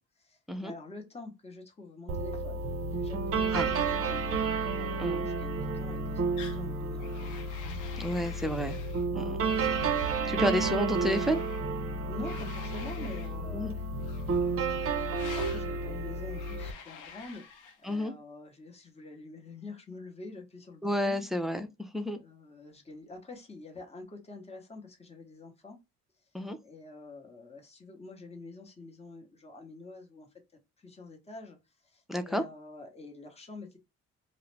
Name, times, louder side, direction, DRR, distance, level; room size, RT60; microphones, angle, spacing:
voice 1, 0.0-4.2 4.7-7.3 12.0-13.9 15.3-17.4 17.8-21.2 22.1-25.8 26.6-30.3 30.8-31.6 31.8-33.8, left 3 dB, 20° left, 0.9 m, -47 dB
sound 1, 2.1-16.7, right 4 dB, 50° right, 0.6 m, -31 dB
sound 2, 6.4-6.6 7.0-9.0 9.4-10.2 10.9-11.6 12.2-13.3 14.0-14.6 15.1-15.7 16.3-18.0, left 7 dB, 90° left, 0.6 m, -48 dB
voice 2, 8.0-8.8 9.1-9.4 10.0-11.4 13.5-13.7 17.8-18.1 20.8-21.7 21.9-22.2 26.3-26.6 32.1-32.4, equal, ahead, 0.4 m, -31 dB
2.3 x 2.0 x 3.1 m
cardioid pair, 90°, 30 cm